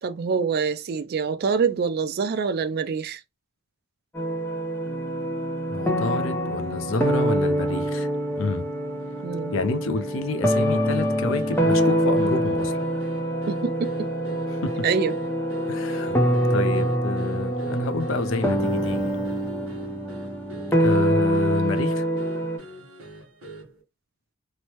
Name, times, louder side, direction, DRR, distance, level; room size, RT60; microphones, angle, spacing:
voice 1, 0.0-3.2 9.2-9.5 13.5-14.1 14.8-15.2, right 5 dB, 50° right, 0.3 m, -25 dB
sound 1, 4.1-22.6, equal, 10° left, 0.6 m, -25 dB
Keyboard (musical), 4.9-19.9, left 1 dB, 85° left, 1.0 m, -40 dB
voice 2, 5.7-8.1 8.4-8.7 9.5-12.8 14.6-14.9 15.7-16.2 16.5-19.2 20.8-22.1, left 3 dB, 65° left, 0.4 m, -29 dB
sound 2, 10.5-23.8, right 2 dB, 85° right, 1.2 m, -44 dB
3.1 x 2.1 x 2.8 m
head